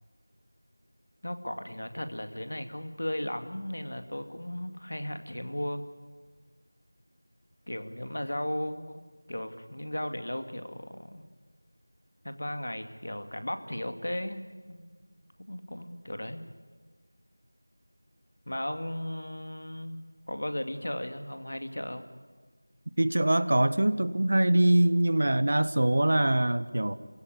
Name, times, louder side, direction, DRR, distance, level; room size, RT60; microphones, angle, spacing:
voice 1, 1.2-5.8 7.7-9.0 9.3-11.2 12.2-14.9 15.5-16.4 18.5-20.0 20.3-22.1, left 1 dB, 65° left, 8 dB, 2.4 m, -36 dB
voice 2, 23.0-26.9, right 1 dB, 45° right, 14 dB, 1.0 m, -23 dB
28.5 x 17.0 x 10.0 m, 1.4 s
figure-of-eight pair, 175°, 0 cm